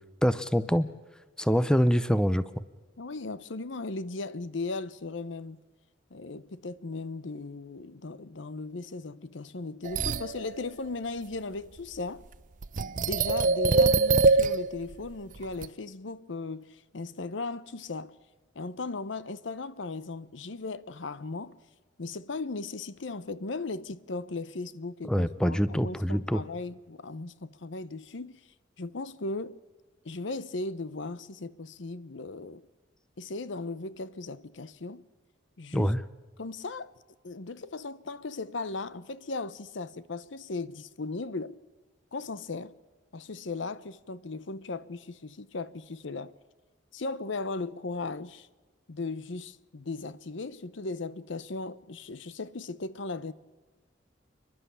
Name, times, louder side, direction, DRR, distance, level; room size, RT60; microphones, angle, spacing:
voice 1, 0.2-0.9 1.4-2.6 25.0-26.4 35.7-36.0, equal, 5° left, 0.6 m, -25 dB
voice 2, 3.0-5.6 6.1-12.2 12.8-18.2 18.5-21.6 22.0-28.4 28.8-29.6 30.0-32.7 33.2-35.0 35.6-35.9 36.4-36.9 37.2-41.6 42.1-42.7 43.1-46.3 46.9-48.5 48.9-53.3, left 3 dB, 65° left, 0.8 m, -37 dB
sound 1, 9.9-10.4 12.6-14.9 15.4-15.7, right 3 dB, 40° right, 0.5 m, -23 dB
29.0 x 11.5 x 8.4 m
head